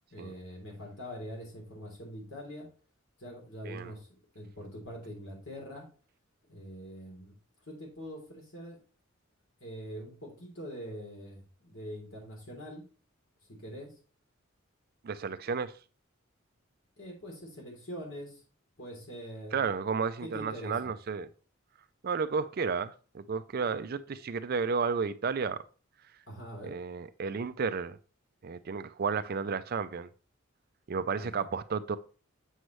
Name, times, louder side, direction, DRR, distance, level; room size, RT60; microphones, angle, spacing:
voice 1, 0.1-2.7 3.2-4.1 4.3-5.9 6.5-7.4 7.7-8.8 9.6-12.8 13.5-13.9 17.0-18.4 18.8-19.8 20.2-20.9 26.3-26.7 31.2-31.4, equal, 65° left, 3.3 m, -43 dB
voice 2, 15.0-15.7 19.5-21.3 22.0-25.6 26.6-28.0 28.4-30.1 30.9-32.0, right 5 dB, 45° right, 0.4 m, -32 dB
7.8 x 6.4 x 3.2 m
head